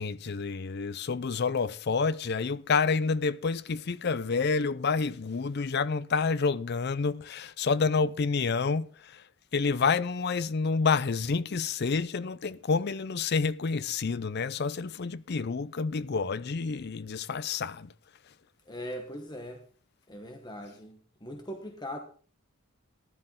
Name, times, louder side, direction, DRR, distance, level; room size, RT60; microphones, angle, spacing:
voice 1, 0.0-9.2 9.5-17.9, left 4 dB, 50° left, 0.5 m, -28 dB
voice 2, 18.7-19.6 20.1-22.0, equal, 20° left, 1.2 m, -40 dB
14.5 x 11.0 x 3.8 m
head